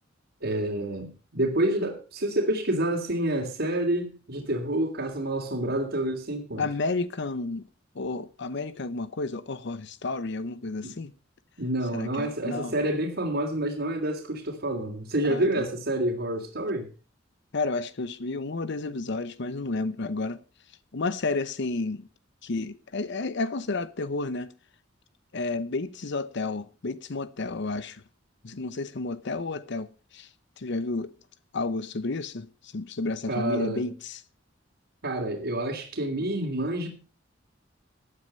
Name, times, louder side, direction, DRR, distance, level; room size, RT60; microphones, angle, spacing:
voice 1, 0.4-6.6 10.8-10.9 11.6-16.9 33.3-33.9 35.0-36.9, right 1 dB, 60° right, 3.0 m, -28 dB
voice 2, 6.6-7.7 7.9-11.1 11.9-12.7 15.3-15.6 17.5-20.4 20.9-22.1 22.4-24.5 25.3-28.0 28.4-30.3 30.6-31.1 31.5-34.2, left 3 dB, 60° left, 0.8 m, -31 dB
15.5 x 9.5 x 5.5 m
head